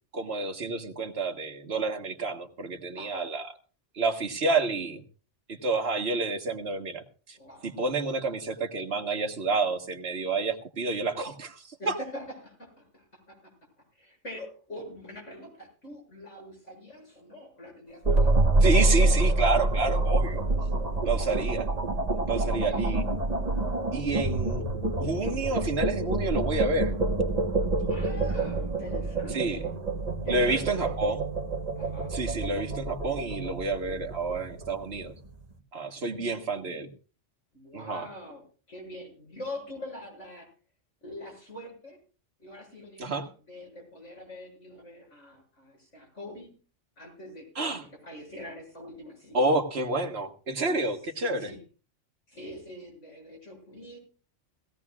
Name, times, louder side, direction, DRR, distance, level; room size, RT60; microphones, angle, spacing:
voice 1, 0.1-3.4 3.9-5.0 5.5-7.4 7.6-12.0 18.6-20.4 21.0-21.7 22.3-23.0 23.9-24.7 25.0-26.9 29.3-29.6 30.3-31.3 32.1-35.1 35.7-36.9 37.7-38.1 43.0-43.3 47.5-47.8 49.3-51.5, right 3 dB, 60° right, 4 dB, 1.7 m, -29 dB
voice 2, 2.9-3.3 7.3-7.7 11.8-13.5 14.0-18.4 22.1-22.8 27.9-29.7 30.2-30.9 31.7-32.1 36.0-36.9 37.5-40.5 41.0-42.0 42.4-46.5 47.0-49.4 51.4-51.6 52.3-54.0, left 1 dB, 70° left, -2 dB, 8.0 m, -44 dB
sound 1, 18.1-35.3, right 2 dB, 35° right, 1.4 m, -27 dB
19.0 x 16.5 x 2.4 m, 0.37 s
omnidirectional pair, 1.3 m